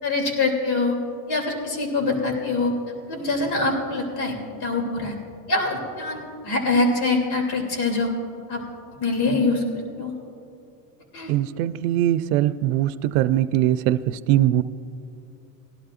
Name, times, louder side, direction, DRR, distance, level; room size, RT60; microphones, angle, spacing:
voice 1, 0.0-1.0 1.3-2.7 3.1-4.3 4.6-5.1 5.5-8.1 8.5-8.6 9.0-9.6 10.0-10.1 11.1-11.3, left 3 dB, 55° left, 1 dB, 3.0 m, -24 dB
voice 2, 11.3-12.9 13.1-14.0 14.3-14.6, right 13 dB, 70° right, 13 dB, 0.6 m, -21 dB
20.0 x 12.0 x 2.5 m, 2.8 s
supercardioid pair, 130°, 45 cm